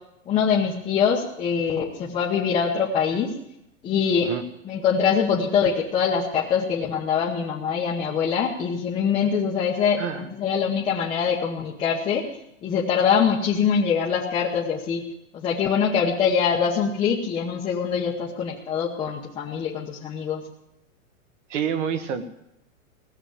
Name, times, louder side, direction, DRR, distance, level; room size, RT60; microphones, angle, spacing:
voice 1, 0.3-3.3 3.8-4.3 4.7-12.3 12.6-15.0 15.3-20.4, left 7 dB, 15° left, -4 dB, 1.0 m, -23 dB
voice 2, 10.0-10.3 21.5-22.3, right 7 dB, 60° right, 9 dB, 1.7 m, -28 dB
17.5 x 6.9 x 9.0 m, 0.83 s
supercardioid pair, 165°, 40 cm